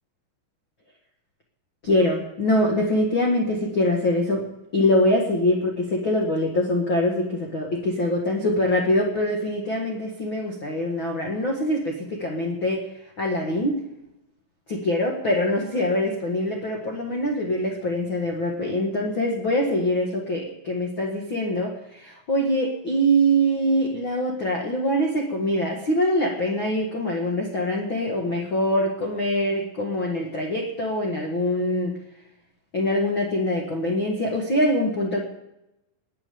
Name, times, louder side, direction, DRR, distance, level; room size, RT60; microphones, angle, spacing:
voice 1, 1.8-4.4 4.7-12.8 13.2-13.8 14.7-31.9 32.7-35.2, left 1 dB, 55° left, 0 dB, 1.3 m, -24 dB
20.5 x 7.7 x 6.9 m, 0.89 s
omnidirectional pair, 5.3 m